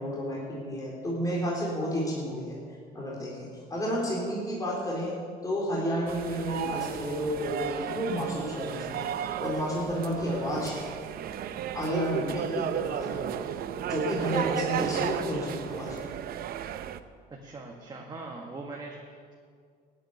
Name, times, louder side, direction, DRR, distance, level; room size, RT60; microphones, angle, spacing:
voice 1, 0.0-2.5 2.9-5.2 5.4-10.7 11.7-13.5 13.9-16.1, equal, 20° left, -5 dB, 4.0 m, -31 dB
sound 1, 6.1-17.0, right 10 dB, 65° right, 0.7 m, -34 dB
voice 2, 17.3-19.3, right 3 dB, 25° right, 0 dB, 1.7 m, -41 dB
14.5 x 8.8 x 9.7 m, 2.1 s
cardioid pair, 110°, 17 cm